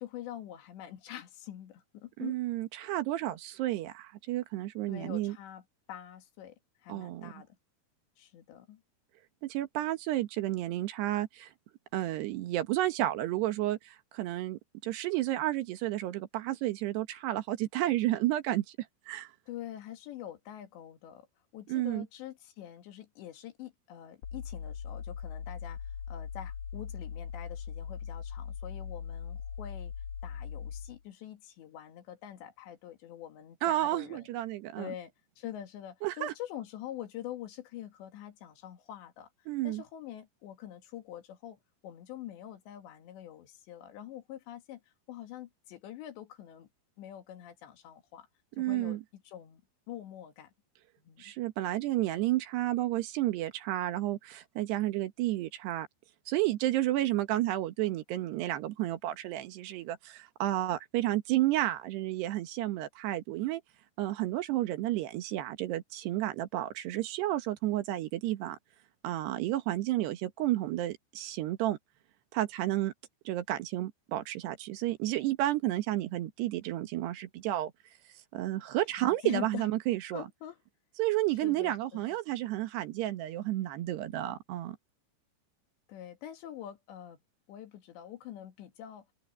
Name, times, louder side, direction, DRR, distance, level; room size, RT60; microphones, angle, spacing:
voice 1, 0.0-2.4 4.9-7.5 8.2-8.8 19.5-21.3 21.5-29.9 30.2-34.3 34.8-44.8 45.1-46.7 47.0-48.3 48.6-49.6 49.9-50.5 51.0-51.3 79.0-79.7 80.1-80.6 81.4-82.0 85.9-87.2 87.5-89.1, left 11 dB, 85° left, 4.2 m, -45 dB
voice 2, 2.2-5.4 6.9-7.3 9.4-11.5 11.9-18.6 19.1-19.3 21.7-22.1 33.6-34.9 36.0-36.3 39.5-39.8 48.6-49.0 51.2-55.9 56.3-63.6 64.0-68.6 69.0-71.8 72.3-72.9 73.3-77.7 78.3-80.2 81.0-84.8, right 15 dB, 75° right, 3.3 m, -31 dB
sound 1, 24.2-31.0, left 7 dB, 55° left, 2.2 m, -40 dB
open air
omnidirectional pair, 5.0 m